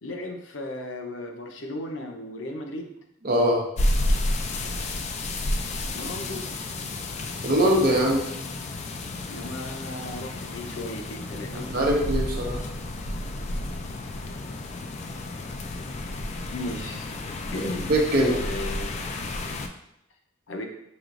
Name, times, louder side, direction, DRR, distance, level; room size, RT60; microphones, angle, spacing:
voice 1, 0.0-2.9 5.9-6.5 9.3-11.9 16.5-17.9 18.2-19.0 20.5-20.7, left 1 dB, 85° left, 3 dB, 0.7 m, -36 dB
voice 2, 3.2-3.6 7.4-8.2 11.5-12.6 17.9-18.4, right 1 dB, 50° right, -1 dB, 0.9 m, -22 dB
sound 1, 3.8-19.7, left 1 dB, 35° left, 0.3 m, -31 dB
6.2 x 2.9 x 2.5 m, 0.82 s
head